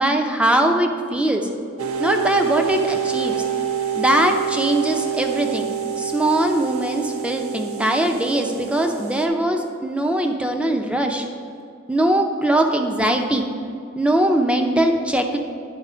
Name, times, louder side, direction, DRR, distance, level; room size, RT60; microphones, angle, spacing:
voice 1, 0.0-1.5 2.0-3.4 3.9-5.7 6.0-11.2 11.9-13.4 13.9-15.4, right 1 dB, 5° right, 4 dB, 0.6 m, -21 dB
sound 1, 1.8-9.3, right 8 dB, 75° right, 0.6 m, -27 dB
10.5 x 4.1 x 4.9 m, 2.5 s
head